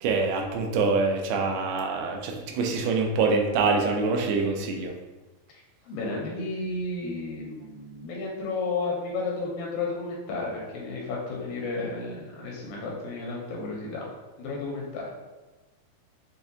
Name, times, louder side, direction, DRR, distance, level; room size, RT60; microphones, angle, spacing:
voice 1, 0.0-4.9, right 4 dB, 90° right, 3 dB, 2.5 m, -25 dB
voice 2, 5.5-14.1 14.4-15.1, left 3 dB, 80° left, -2 dB, 2.2 m, -32 dB
6.4 x 2.4 x 2.7 m, 1.2 s
omnidirectional pair, 4.4 m